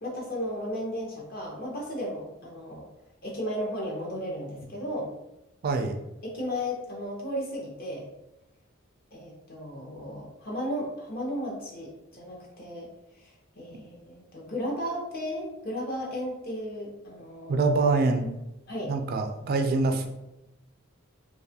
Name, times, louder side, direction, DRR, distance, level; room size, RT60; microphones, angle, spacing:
voice 1, 0.0-2.8 3.2-5.1 6.2-8.1 9.1-12.9 13.2-17.6 18.7-18.9, equal, 45° left, -3 dB, 0.7 m, -34 dB
voice 2, 5.6-6.0 17.5-18.2 18.9-20.1, right 3 dB, 45° right, 5 dB, 0.3 m, -24 dB
2.4 x 2.3 x 2.7 m, 0.94 s
head